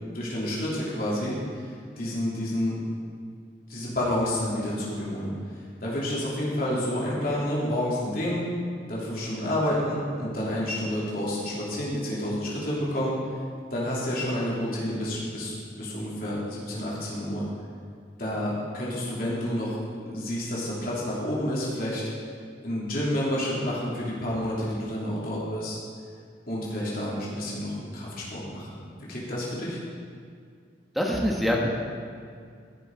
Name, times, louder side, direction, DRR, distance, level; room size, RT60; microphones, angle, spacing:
voice 1, 0.1-2.8 3.7-5.3 5.8-8.4 8.9-13.1 13.7-17.4 18.2-22.0 22.6-25.8 26.5-28.8 29.1-29.8, left 1 dB, 50° left, -6 dB, 3.2 m, -29 dB
voice 2, 30.9-31.7, equal, ahead, -2 dB, 1.3 m, -24 dB
16.0 x 6.7 x 4.7 m, 2.2 s
head